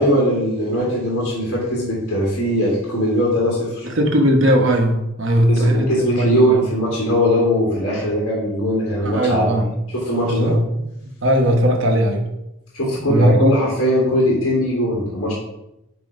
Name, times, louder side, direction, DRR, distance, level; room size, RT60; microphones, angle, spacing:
voice 1, 0.0-3.9 5.5-10.5 12.7-15.3, equal, 60° left, -5 dB, 2.2 m, -20 dB
voice 2, 3.8-6.6 9.0-9.6 10.2-10.9 11.2-12.2 13.1-13.6, equal, 60° right, 3 dB, 1.1 m, -18 dB
9.2 x 3.1 x 5.3 m, 0.89 s
head